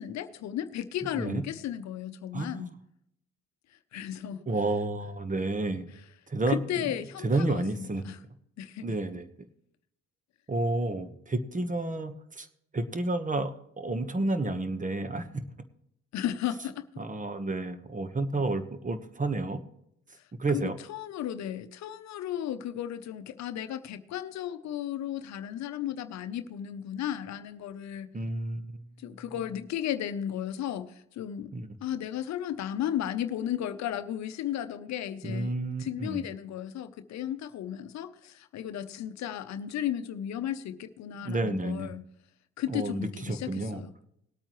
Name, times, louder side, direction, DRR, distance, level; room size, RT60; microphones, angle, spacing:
voice 1, 0.0-2.7 3.9-4.4 6.5-8.2 8.6-8.9 16.1-16.8 20.5-28.1 29.0-31.5 31.8-42.0 42.6-43.9, left 10 dB, 65° left, 0.8 m, -34 dB
voice 2, 2.3-2.7 4.5-5.9 6.3-6.6 7.2-8.0 8.8-9.3 10.5-12.5 12.7-15.4 17.0-19.6 20.4-20.7 28.1-28.9 31.5-31.8 35.2-36.3 41.1-41.9 42.7-43.8, right 2 dB, 25° right, 1.3 m, -30 dB
19.5 x 8.7 x 3.1 m
supercardioid pair, 55°, 30 cm